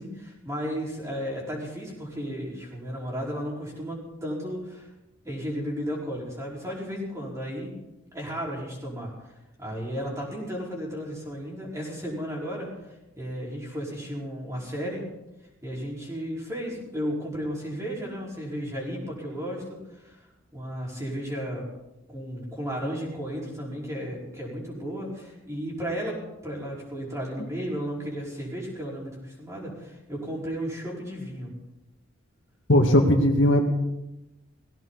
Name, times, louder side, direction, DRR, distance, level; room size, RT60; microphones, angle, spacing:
voice 1, 0.0-4.9 5.2-7.7 8.1-9.1 9.6-15.0 15.6-20.2 20.5-21.6 22.1-31.5, equal, 15° right, -4 dB, 4.9 m, -34 dB
voice 2, 32.7-33.6, left 1 dB, 60° left, 3 dB, 1.9 m, -18 dB
19.0 x 16.0 x 4.1 m, 0.94 s
head